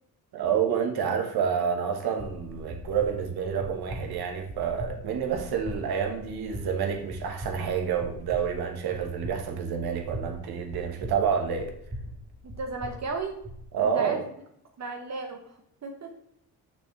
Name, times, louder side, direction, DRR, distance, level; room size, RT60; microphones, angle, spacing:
voice 1, 0.3-11.7 13.7-14.2, right 7 dB, 70° right, 4 dB, 1.5 m, -28 dB
sound 1, 2.2-13.6, equal, 15° right, 1.5 m, -41 dB
voice 2, 12.4-13.4 13.8-14.2 14.8-15.5 15.8-16.1, right 4 dB, 45° right, 3 dB, 1.1 m, -34 dB
6.6 x 6.2 x 3.3 m, 0.72 s
supercardioid pair, 75°, 39 cm